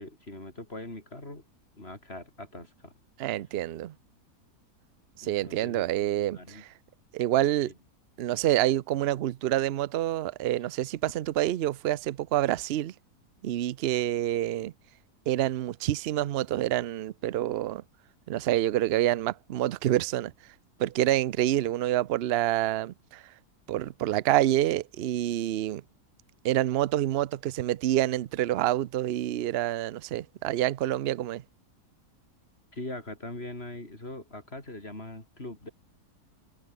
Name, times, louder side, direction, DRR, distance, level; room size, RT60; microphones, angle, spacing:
voice 1, 0.0-1.4 1.8-2.9 5.2-5.8 6.3-6.6 7.6-7.7 32.7-35.7, left 2 dB, 40° left, 5.6 m, -41 dB
voice 2, 3.2-3.9 5.2-6.7 7.1-7.7 8.2-12.9 13.4-14.7 15.3-17.8 18.3-20.3 20.8-23.2 23.7-25.8 26.4-31.4, right 13 dB, 65° right, 0.6 m, -27 dB
omnidirectional pair, 1.7 m